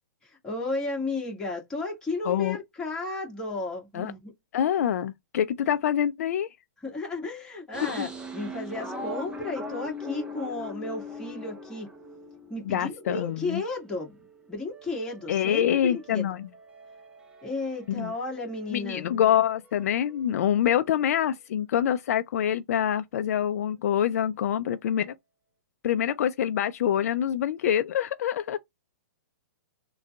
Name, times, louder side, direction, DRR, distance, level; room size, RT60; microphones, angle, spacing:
voice 1, 0.2-4.3 5.6-5.7 6.8-11.9 12.5-16.2 17.4-19.0, left 2 dB, 10° left, 1.7 m, -34 dB
voice 2, 2.3-2.6 3.9-4.1 4.5-6.6 7.8-8.1 12.7-13.6 15.3-16.5 17.9-18.1 18.7-25.1 25.8-28.6, left 10 dB, 60° left, 0.4 m, -26 dB
sound 1, 7.7-13.7 14.1-18.3 18.6-21.2, left 1 dB, 10° right, 0.7 m, -42 dB
3.8 x 2.3 x 2.2 m
hypercardioid pair, 145°, 9 cm